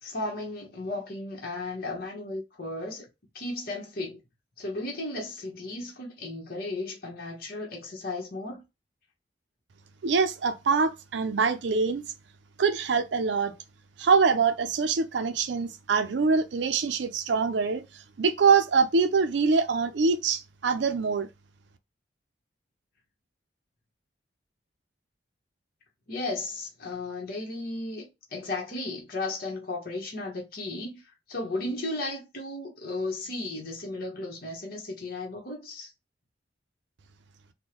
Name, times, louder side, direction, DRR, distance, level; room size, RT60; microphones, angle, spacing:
voice 1, 0.0-3.1 3.3-4.2 4.6-8.6 26.1-31.0 31.3-35.9, left 2 dB, 55° left, 1.0 m, -35 dB
voice 2, 10.0-12.0 12.6-13.5 14.0-17.8 18.2-21.3, right 5 dB, 70° right, 0.5 m, -24 dB
3.6 x 2.2 x 2.9 m
head